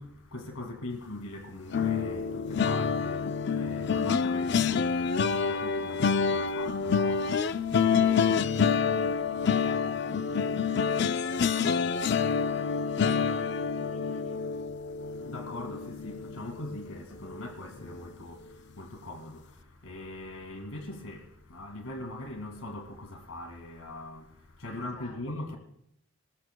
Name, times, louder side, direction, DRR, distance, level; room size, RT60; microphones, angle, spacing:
voice 1, 0.0-8.4 14.8-25.6, left 2 dB, 90° left, 2.3 m, -41 dB
sound 1, 1.7-16.9 17.3-17.5 17.8-18.0, left 6 dB, 55° left, 0.5 m, -27 dB
voice 2, 8.0-14.5 24.7-25.6, left 1 dB, 35° left, 5.5 m, -50 dB
26.5 x 20.5 x 2.3 m
head